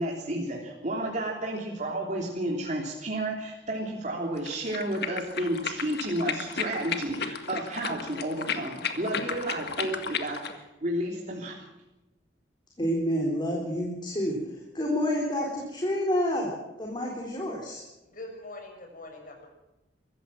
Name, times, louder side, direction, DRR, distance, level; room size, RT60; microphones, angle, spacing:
voice 1, 0.0-11.5, right 1 dB, 45° right, -1 dB, 3.3 m, -32 dB
sound 1, 4.4-10.6, left 6 dB, 65° left, 1.9 m, -34 dB
voice 2, 12.8-16.5 16.8-17.8, equal, 25° left, -1 dB, 4.0 m, -29 dB
voice 3, 18.0-19.5, left 2 dB, 50° left, 3 dB, 6.6 m, -43 dB
23.5 x 15.0 x 7.6 m, 0.98 s
head